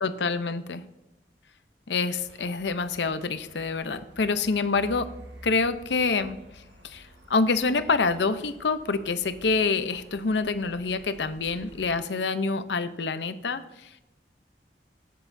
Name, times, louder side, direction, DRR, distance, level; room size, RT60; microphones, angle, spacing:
voice 1, 0.0-0.8 1.9-5.1 5.4-6.4 6.8-14.0, left 4 dB, 85° left, 11 dB, 0.7 m, -27 dB
sound 1, 2.1-12.0, right 1 dB, 85° right, 1.7 m, -51 dB
13.5 x 9.4 x 2.7 m, 0.93 s
head